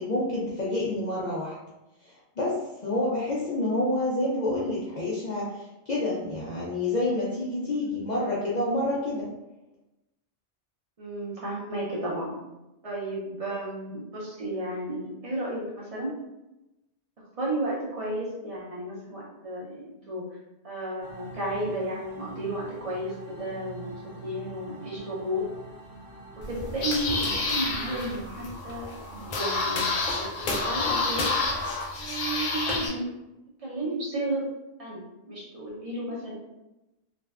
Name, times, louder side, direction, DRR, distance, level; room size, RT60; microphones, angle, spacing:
voice 1, 0.0-1.6 2.0-9.3, left 1 dB, 65° left, -7 dB, 0.4 m, -28 dB
voice 2, 11.0-12.3 12.8-16.1 17.2-20.4 20.6-25.4 26.4-31.3 31.9-33.1 33.6-34.4 34.8-35.0 35.3-36.3, right 1 dB, 40° right, -4 dB, 0.5 m, -33 dB
sound 1, 21.0-28.1, right 4 dB, 60° right, 0.9 m, -45 dB
sound 2, 26.4-32.9, left 3 dB, 85° left, 0.9 m, -29 dB
2.5 x 2.1 x 2.3 m, 0.96 s
omnidirectional pair, 1.3 m